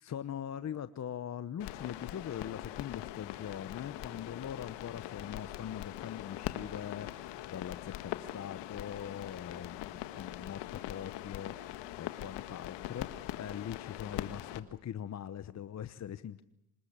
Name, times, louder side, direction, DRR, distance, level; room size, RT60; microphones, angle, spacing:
voice 1, 0.0-16.4, left 9 dB, 40° left, 13 dB, 0.9 m, -42 dB
sound 1, 1.6-14.6, left 14 dB, 80° left, 1.6 m, -42 dB
26.0 x 20.5 x 8.7 m, 0.81 s
supercardioid pair, 80°, 42 cm